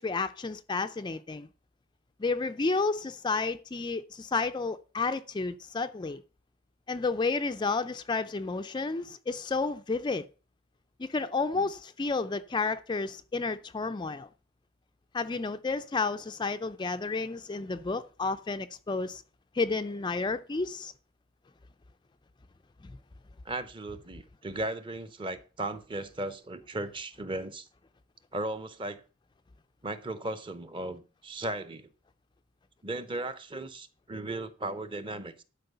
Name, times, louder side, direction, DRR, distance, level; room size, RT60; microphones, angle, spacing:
voice 1, 0.0-1.5 2.2-6.2 6.9-10.3 11.0-14.3 15.1-19.2 19.5-20.9, left 4 dB, 20° left, 0.4 m, -31 dB
voice 2, 23.4-27.7 28.3-29.0 29.8-31.9 32.8-35.4, right 2 dB, 25° right, 0.8 m, -36 dB
11.5 x 4.7 x 6.7 m
head